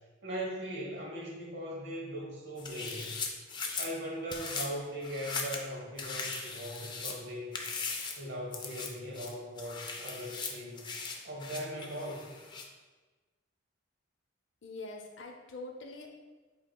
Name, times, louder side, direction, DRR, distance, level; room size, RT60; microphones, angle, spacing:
voice 1, 0.2-3.1 3.8-7.6 8.2-10.9 11.2-12.3, equal, 60° right, -2 dB, 1.1 m, -39 dB
sound 1, 2.6-3.9 4.3-4.7 5.0-5.6 6.0-7.2 7.5-8.2 8.5-8.9 9.1-12.6, left 4 dB, 20° left, 0.4 m, -39 dB
voice 2, 14.6-16.1, left 2 dB, 65° left, 2 dB, 0.6 m, -44 dB
7.6 x 2.8 x 2.2 m, 1.3 s
head